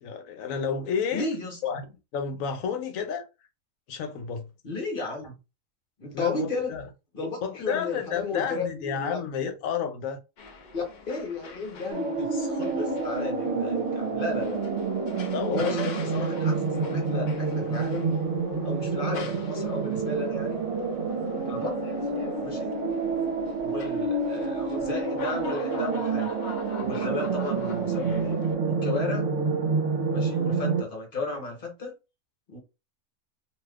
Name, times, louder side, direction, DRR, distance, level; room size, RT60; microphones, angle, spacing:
voice 1, 0.0-1.3 1.6-1.9 2.1-3.3 3.9-4.5 6.1-6.9 7.4-10.2 15.3-16.2, left 7 dB, 75° left, 1.0 m, -31 dB
voice 2, 1.1-1.6 4.6-5.4 6.0-6.7 7.1-9.2 10.7-14.7 15.5-18.1 18.6-20.6 21.5-21.7 22.4-22.8 23.6-26.3 26.8-28.3 28.6-29.3 30.1-31.9 32.5-32.6, left 3 dB, 45° left, 1.0 m, -34 dB
sound 1, 10.4-28.5, left 3 dB, 90° left, 0.4 m, -44 dB
sound 2, 11.9-30.8, right 4 dB, 55° right, 1.1 m, -28 dB
2.7 x 2.3 x 3.4 m
omnidirectional pair, 1.5 m